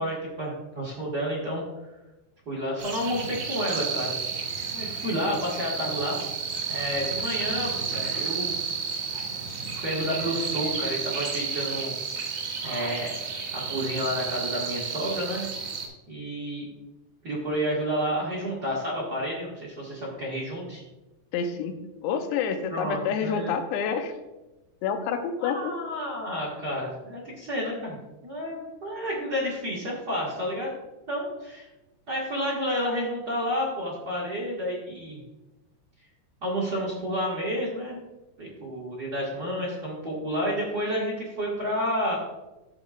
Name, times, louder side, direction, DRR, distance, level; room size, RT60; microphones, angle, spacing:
voice 1, 0.0-1.6 2.4-4.1 4.7-6.2 6.7-8.5 9.7-11.9 12.2-13.1 13.5-15.5 16.1-16.7 17.2-20.8 22.7-23.5 25.4-28.0 28.2-30.7 31.1-31.7 32.1-35.2 36.4-38.0 38.4-42.1, equal, 85° right, -6 dB, 0.8 m, -30 dB
sound 1, 2.8-15.9, right 6 dB, 55° right, 1.9 m, -32 dB
voice 2, 21.3-24.1 24.8-25.7, left 6 dB, 80° left, 7 dB, 3.0 m, -28 dB
13.0 x 7.2 x 2.5 m, 1.0 s
omnidirectional pair, 5.2 m